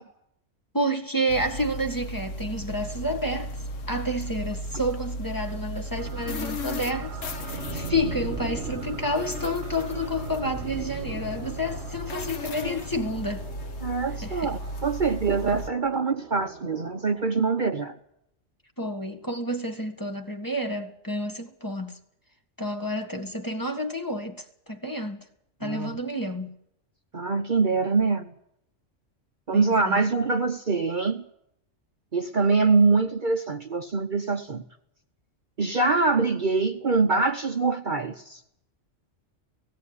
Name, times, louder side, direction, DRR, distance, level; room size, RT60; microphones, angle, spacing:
voice 1, 0.7-3.5 3.9-13.4 14.2-14.5 18.8-22.0 22.6-25.2 25.6-26.5 29.5-30.0, equal, 15° left, 1.9 m, -30 dB
sound 1, 1.3-15.7, left 1 dB, 80° left, 1.4 m, -36 dB
sound 2, 6.0-17.9, right 5 dB, 60° right, 1.8 m, -40 dB
voice 2, 13.8-18.0 25.6-25.9 27.1-28.3 29.5-31.2 32.1-34.6 35.6-38.4, right 4 dB, 45° right, 1.1 m, -24 dB
17.0 x 17.0 x 9.6 m
omnidirectional pair, 1.3 m